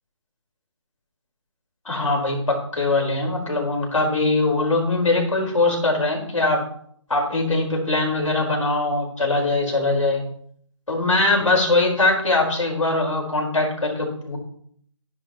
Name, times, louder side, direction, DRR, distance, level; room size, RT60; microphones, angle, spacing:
voice 1, 1.9-6.6 7.1-10.2 10.9-14.4, left 2 dB, 80° left, -1 dB, 5.1 m, -21 dB
13.0 x 10.5 x 3.2 m, 0.63 s
figure-of-eight pair, 160°, 16 cm